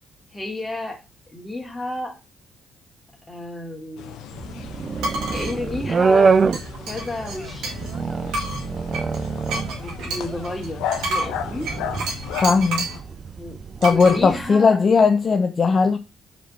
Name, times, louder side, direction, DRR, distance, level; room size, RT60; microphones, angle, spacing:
voice 1, 0.3-1.0 1.3-2.1 3.3-4.1 5.3-6.3 6.9-7.7 9.8-11.7 13.4-14.8, left 1 dB, 15° left, 2.3 m, -31 dB
sound 1, 4.0-13.0, left 9 dB, 90° left, 0.7 m, -35 dB
sound 2, 4.3-14.5, right 5 dB, 40° right, 0.4 m, -26 dB
sound 3, 5.0-5.5 6.5-7.9 8.3-13.0 13.8-14.2, right 2 dB, 85° right, 2.0 m, -29 dB
voice 2, 12.4-12.9 13.8-16.0, left 5 dB, 40° left, 0.6 m, -17 dB
5.0 x 4.5 x 5.5 m
cardioid pair, 90°, 0 cm